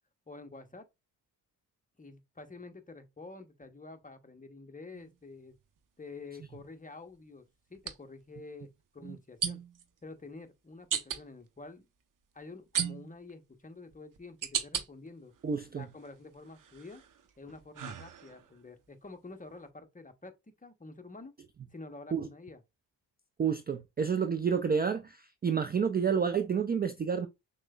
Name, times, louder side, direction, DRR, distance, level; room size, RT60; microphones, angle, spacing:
voice 1, 0.3-0.9 2.0-5.5 6.0-7.4 7.7-9.6 10.0-11.9 12.3-15.3 15.7-17.0 17.4-20.3 20.6-21.3 21.7-22.6, left 3 dB, 20° left, 0.8 m, -48 dB
sound 1, 4.9-5.1 7.8-7.9 9.4-9.8 10.9-11.2 12.7-13.3 13.9-14.9 15.4-16.1 16.5-18.5, right 8 dB, 45° right, 0.8 m, -35 dB
voice 2, 15.4-15.9 22.1-22.3 23.4-27.3, right 6 dB, 25° right, 0.4 m, -29 dB
6.0 x 2.2 x 2.3 m
hypercardioid pair, 45°, 44 cm